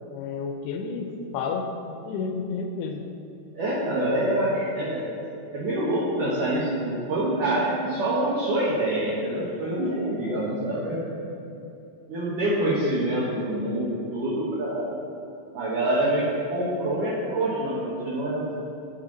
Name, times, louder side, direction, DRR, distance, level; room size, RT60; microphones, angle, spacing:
voice 1, 0.1-3.1, left 4 dB, 80° left, 5 dB, 2.4 m, -31 dB
voice 2, 3.5-5.1 5.5-11.0 12.1-14.9 15.5-18.6, right 1 dB, 65° right, -7 dB, 2.2 m, -26 dB
9.4 x 7.0 x 3.9 m, 2.7 s
omnidirectional pair, 5.0 m